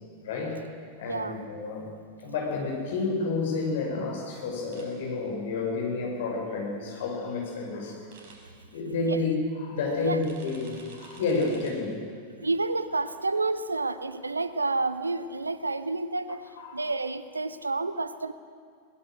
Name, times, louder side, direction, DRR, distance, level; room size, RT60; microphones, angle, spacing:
voice 1, 0.2-0.6 1.0-1.9 2.2-8.0 8.7-12.0 16.6-16.8, left 3 dB, 55° left, 0 dB, 5.8 m, -30 dB
voice 2, 1.0-1.4 9.1-9.2 10.0-10.2 12.4-18.3, right 3 dB, 80° right, 13 dB, 0.9 m, -30 dB
sound 1, 4.7-4.8 8.1-8.3 10.2-11.7, right 4 dB, 50° right, 5.3 m, -50 dB
21.0 x 19.5 x 6.4 m, 2.2 s
figure-of-eight pair, 90°, 0 cm